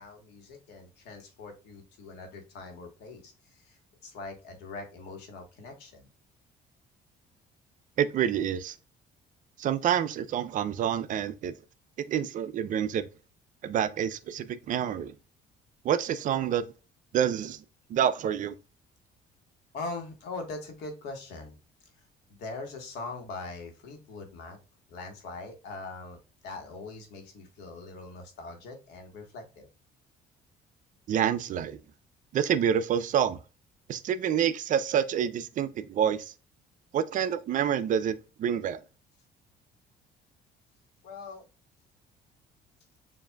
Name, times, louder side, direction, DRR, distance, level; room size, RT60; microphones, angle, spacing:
voice 1, 0.0-6.1 19.7-21.5 22.3-24.6 24.9-29.7 41.0-41.4, left 3 dB, 80° left, 1.3 m, -42 dB
voice 2, 8.0-8.7 9.6-11.5 12.1-13.1 13.6-15.1 15.8-16.6 17.1-17.6 17.9-18.5 31.1-31.8 32.3-33.4 33.9-36.3 36.9-38.8, right 9 dB, 50° right, 0.4 m, -27 dB
7.1 x 2.6 x 2.2 m
cardioid pair, 110°, 17 cm